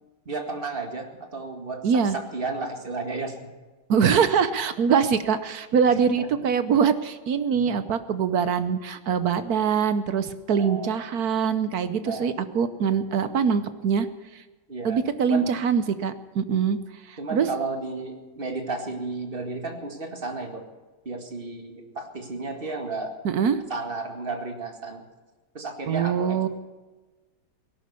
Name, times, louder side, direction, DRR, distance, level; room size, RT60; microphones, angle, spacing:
voice 1, 0.3-1.8 2.1-3.4 5.9-6.3 7.5-7.8 10.6-11.0 12.0-12.3 14.7-15.4 17.2-20.6 21.1-23.1 23.7-25.0 25.5-26.5, right 3 dB, 25° right, 5 dB, 2.1 m, -33 dB
voice 2, 1.8-2.2 3.9-14.1 14.8-16.8 17.1-17.5 23.2-23.6 25.9-26.5, right 6 dB, 60° right, 12 dB, 1.1 m, -23 dB
18.0 x 11.5 x 6.9 m, 1.2 s
omnidirectional pair, 2.4 m